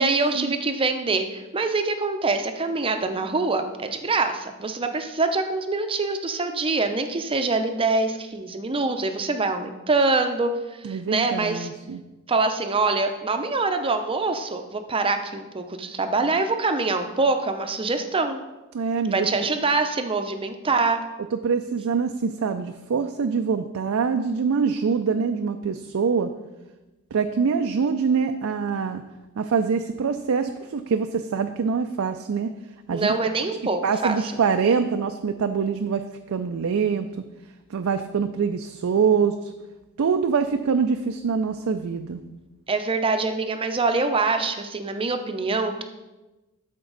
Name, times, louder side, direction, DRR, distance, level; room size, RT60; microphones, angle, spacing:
voice 1, 0.0-11.7 12.3-18.4 19.1-21.0 32.9-34.2 42.7-45.8, right 3 dB, 25° right, 7 dB, 0.6 m, -24 dB
voice 2, 10.8-12.0 18.7-19.3 21.3-26.3 27.1-29.0 29.4-32.5 32.9-33.1 33.8-37.1 37.7-39.5 40.0-42.2, right 5 dB, 70° right, 7 dB, 0.4 m, -24 dB
13.0 x 4.4 x 3.9 m, 1.1 s
head